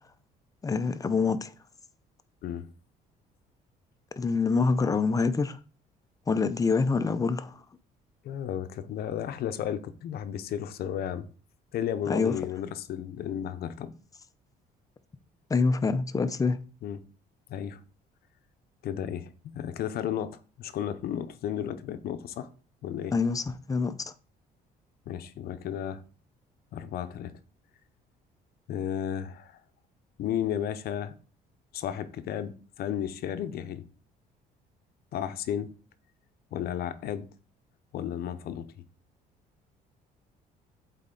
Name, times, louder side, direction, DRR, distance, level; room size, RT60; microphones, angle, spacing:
voice 1, 0.6-1.5 4.2-5.6 6.3-7.6 12.1-12.3 15.5-16.6 23.1-24.1, left 4 dB, 20° left, 0.6 m, -26 dB
voice 2, 8.2-11.3 11.7-13.9 16.8-17.0 17.5-17.8 18.8-22.5 22.8-23.1 25.1-26.0 26.7-27.3 28.7-29.6 30.2-31.1 31.7-33.8 35.1-35.7 36.5-37.3 37.9-38.7, left 9 dB, 65° left, 0.7 m, -33 dB
7.9 x 4.2 x 3.8 m
cardioid pair, 110°, 17 cm